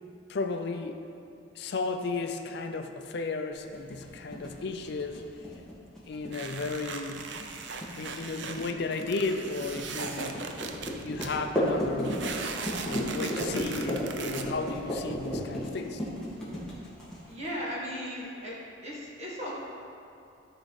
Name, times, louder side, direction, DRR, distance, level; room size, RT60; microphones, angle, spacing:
voice 1, 0.3-1.0 1.6-5.2 6.1-7.3 8.0-10.6 11.0-12.2 12.9-16.0, left 3 dB, 55° left, 5 dB, 0.5 m, -34 dB
sound 1, 3.7-17.5, equal, 5° left, 1.9 m, -34 dB
sound 2, 6.3-11.4 12.0-14.4, right 5 dB, 65° right, 0.6 m, -39 dB
voice 2, 17.3-18.6 18.8-19.5, equal, 35° right, -6 dB, 1.9 m, -36 dB
13.5 x 4.8 x 4.1 m, 2.6 s
head